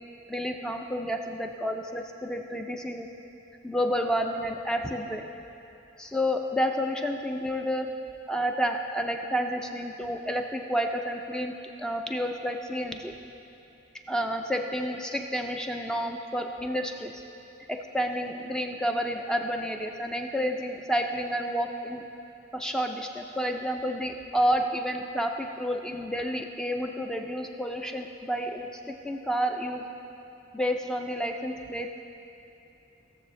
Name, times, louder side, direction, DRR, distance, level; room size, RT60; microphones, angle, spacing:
voice 1, 0.3-3.1 3.6-5.2 6.0-7.9 8.3-13.1 14.1-17.2 17.7-22.0 22.5-29.9 30.5-31.9, equal, 5° left, 3 dB, 0.3 m, -30 dB
15.5 x 6.8 x 3.2 m, 2.9 s
head